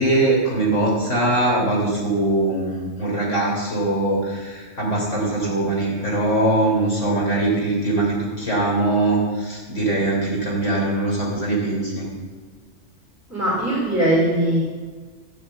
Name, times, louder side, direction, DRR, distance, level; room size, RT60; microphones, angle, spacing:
voice 1, 0.0-12.0, right 2 dB, 65° left, -3 dB, 4.0 m, -21 dB
voice 2, 13.3-14.6, right 1 dB, ahead, -7 dB, 4.4 m, -20 dB
13.5 x 8.0 x 7.6 m, 1.5 s
omnidirectional pair, 1.3 m